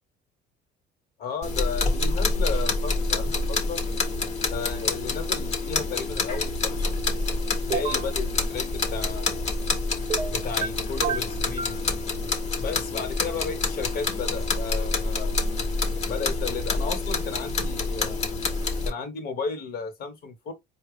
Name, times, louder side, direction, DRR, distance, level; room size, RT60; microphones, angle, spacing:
voice 1, 1.2-3.9 4.5-7.0 7.7-9.7 10.3-12.0 12.6-15.4 16.0-18.2 18.8-20.5, left 5 dB, 50° left, 1.4 m, -34 dB
sound 1, 1.4-18.9, left 3 dB, 35° left, 1.1 m, -27 dB
sound 2, 7.7-8.1 10.1-10.7 11.0-11.8, right 7 dB, 30° right, 0.6 m, -29 dB
4.6 x 2.4 x 3.3 m
cardioid pair, 145°, 19 cm